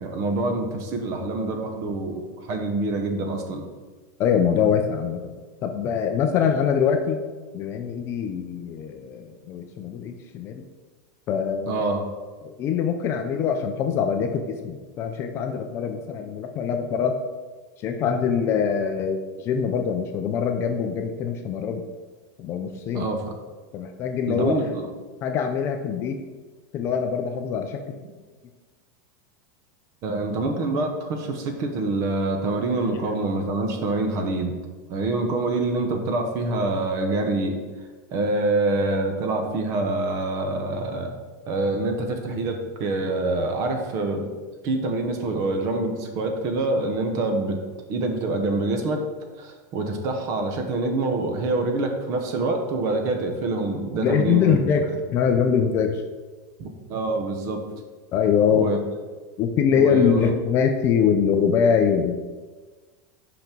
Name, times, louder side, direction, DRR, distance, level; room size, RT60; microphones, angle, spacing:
voice 1, 0.0-3.6 11.7-12.1 22.9-23.3 24.3-24.9 30.0-34.5 34.9-37.6 38.1-41.1 41.5-44.3 44.6-47.6 47.9-49.0 49.4-54.6 56.6-57.6 58.5-58.8 59.7-60.4, right 2 dB, 35° right, 4 dB, 1.0 m, -26 dB
voice 2, 4.2-5.3 5.6-7.2 7.5-10.6 11.3-11.8 12.4-17.2 17.8-21.8 22.4-23.1 23.7-24.6 25.2-26.2 26.7-28.0 54.0-56.0 58.1-58.7 59.4-62.2, left 7 dB, 25° left, 5 dB, 0.4 m, -23 dB
5.7 x 5.2 x 5.9 m, 1.3 s
supercardioid pair, 170°, 10 cm